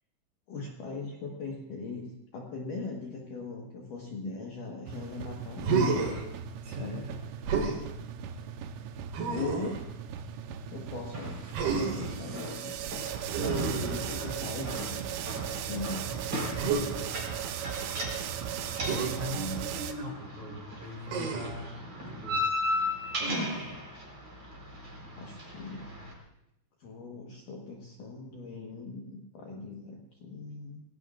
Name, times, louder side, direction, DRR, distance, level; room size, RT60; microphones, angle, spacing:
voice 1, 0.5-5.9 6.8-7.1 8.7-8.8 9.3-9.8 10.7-12.8 13.3-15.1 15.7-16.1 19.3-19.6 23.2-23.6 24.7-24.9 25.2-25.9 26.8-30.8, left 3 dB, 60° left, -1 dB, 2.3 m, -40 dB
sound 1, 4.9-19.9, right 9 dB, 85° right, 3.3 m, -38 dB
Human voice, 5.6-6.2 7.4-7.8 9.1-9.8 11.5-12.2 13.3-14.5 16.6-16.8 18.8-19.1 21.1-21.6 23.2-23.7, right 4 dB, 60° right, 3.7 m, -30 dB
voice 2, 6.6-7.2 16.1-17.1 18.9-22.5 23.1-23.2, equal, 45° right, 0 dB, 3.6 m, -41 dB
sound 2, 11.1-26.1, left 1 dB, 25° right, 4.6 m, -38 dB
27.5 x 18.0 x 2.5 m, 0.85 s
omnidirectional pair, 5.4 m